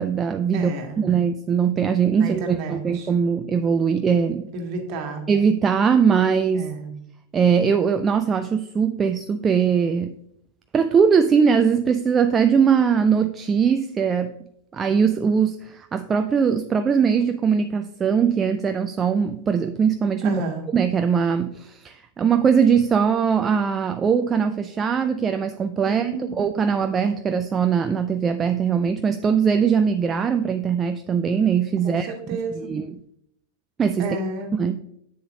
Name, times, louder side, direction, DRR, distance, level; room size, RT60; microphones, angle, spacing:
voice 1, 0.0-0.7 1.0-4.5 5.3-6.7 7.3-10.1 10.7-14.4 14.7-20.4 20.7-32.4 32.7-32.9 33.8-34.2 34.5-34.8, right 6 dB, 20° right, 8 dB, 0.3 m, -21 dB
voice 2, 0.5-1.1 2.1-3.1 4.5-5.3 6.5-6.9 20.2-20.7 25.9-26.4 31.8-32.7 34.0-34.5, right 2 dB, 45° right, 4 dB, 1.5 m, -31 dB
7.8 x 6.9 x 2.7 m, 0.74 s
figure-of-eight pair, 90°, 0 cm